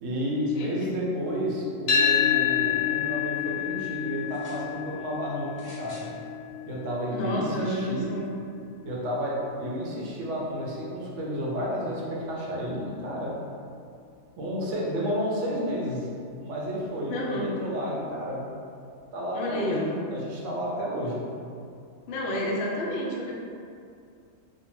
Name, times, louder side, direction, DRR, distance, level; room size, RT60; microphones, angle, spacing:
voice 1, 0.0-6.1 6.7-8.1 8.8-13.4 14.4-16.1 16.4-18.5 19.1-21.2, equal, 70° right, -4 dB, 0.9 m, -31 dB
voice 2, 0.5-0.9 7.1-8.3 17.1-17.5 19.3-19.9 22.1-23.4, left 1 dB, 65° left, -2 dB, 0.6 m, -30 dB
sound 1, 1.9-10.1, left 8 dB, 90° left, 1.0 m, -29 dB
sound 2, 4.2-4.7 5.5-6.1 7.0-7.1, equal, 15° right, 0.5 m, -50 dB
2.6 x 2.1 x 3.0 m, 2.4 s
omnidirectional pair, 1.4 m